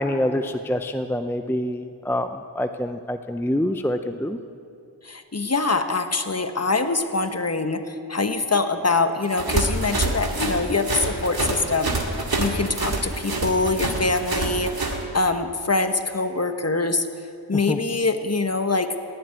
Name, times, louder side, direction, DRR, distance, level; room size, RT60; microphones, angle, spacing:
voice 1, 0.0-4.4 17.7-17.8, left 1 dB, 5° left, 8 dB, 0.6 m, -26 dB
voice 2, 5.0-17.1 17.5-18.9, left 3 dB, 35° left, 8 dB, 1.2 m, -24 dB
sound 1, 9.3-15.0, right 2 dB, 55° right, 2.2 m, -26 dB
17.5 x 7.8 x 9.7 m, 2.5 s
cardioid pair, 40°, 44 cm